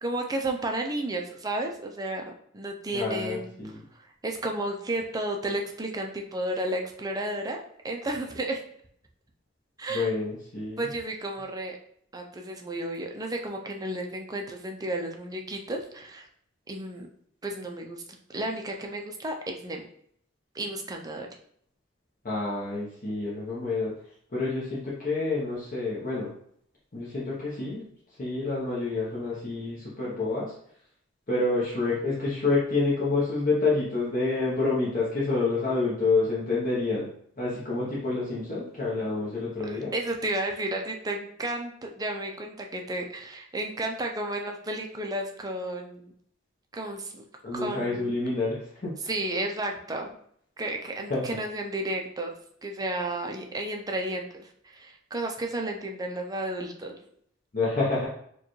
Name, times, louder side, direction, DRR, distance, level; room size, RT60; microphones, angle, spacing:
voice 1, 0.0-3.8 4.2-8.6 9.8-10.1 10.8-11.8 12.1-16.3 16.7-17.1 17.4-18.0 18.3-19.8 20.5-21.3 39.6-46.1 46.7-47.2 47.5-48.1 49.1-50.1 50.6-52.3 52.6-57.0, right 1 dB, 20° right, 2 dB, 0.4 m, -32 dB
voice 2, 2.9-3.8 9.9-10.9 22.2-23.9 24.3-26.3 26.9-27.9 28.2-30.5 31.3-37.1 37.4-39.9 47.4-48.9 51.1-51.2 57.5-58.1, left 3 dB, 40° left, -7 dB, 0.9 m, -28 dB
4.6 x 2.3 x 3.1 m, 0.67 s
head